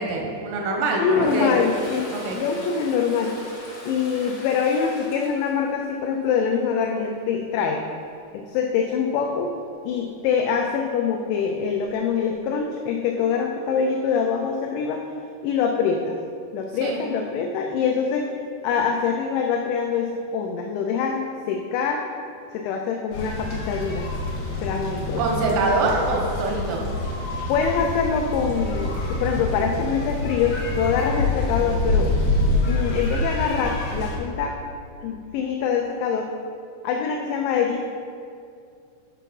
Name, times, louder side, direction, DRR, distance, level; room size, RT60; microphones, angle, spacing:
voice 1, 0.0-1.6 2.1-2.4 16.8-17.0 25.2-26.8, right 3 dB, 90° right, -1 dB, 3.7 m, -24 dB
voice 2, 1.0-3.3 3.8-7.8 8.3-9.5 9.9-15.0 15.4-16.2 16.5-18.3 18.6-21.2 21.5-22.0 22.5-24.1 24.6-25.2 27.5-32.1 32.7-34.5 35.0-36.3 36.8-37.9, left 6 dB, 80° left, 2 dB, 2.7 m, -24 dB
Toilet flush, 1.0-6.2 6.6-6.9 11.4-11.5 11.8-12.5, left 1 dB, 45° left, 2.0 m, -36 dB
sound 1, 23.1-34.2, left 2 dB, 65° left, 3.0 m, -26 dB
9.1 x 5.8 x 5.3 m, 2.4 s
omnidirectional pair, 5.5 m